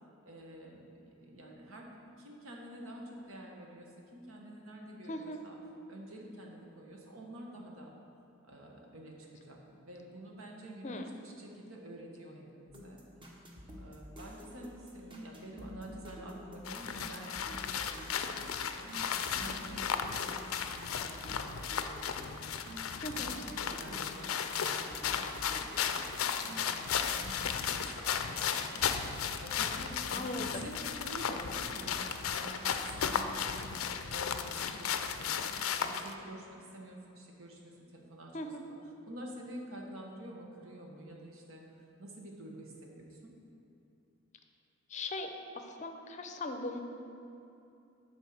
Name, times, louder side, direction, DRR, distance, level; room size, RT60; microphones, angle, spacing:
voice 1, 0.2-1.9 2.2-5.6 5.9-7.9 8.4-13.0 13.8-20.4 20.6-22.5 23.1-38.8 39.1-41.6 42.0-43.4, right 1 dB, 75° right, 0 dB, 1.3 m, -49 dB
voice 2, 5.1-5.4 10.8-11.1 23.0-23.3 30.1-30.7 38.3-38.6 44.9-46.8, left 2 dB, 35° left, 5 dB, 0.6 m, -39 dB
sound 1, 12.7-28.5 28.8-30.4, equal, 25° right, 0.9 m, -50 dB
sound 2, 16.7-36.1, left 7 dB, 75° left, 0.5 m, -35 dB
9.1 x 4.5 x 6.4 m, 2.9 s
head